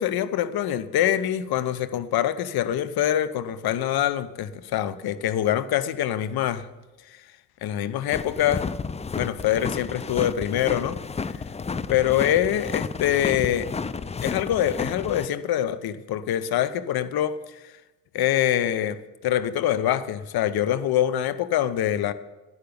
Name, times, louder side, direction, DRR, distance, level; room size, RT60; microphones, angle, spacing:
voice 1, 0.0-6.7 7.6-8.7 9.1-11.0 11.9-13.7 14.2-17.6 18.1-22.1, left 11 dB, 50° left, 0.9 m, -24 dB
sound 1, 8.1-15.3, left 5 dB, 15° left, 0.5 m, -32 dB
11.5 x 8.4 x 9.6 m
hypercardioid pair, 50°, 48 cm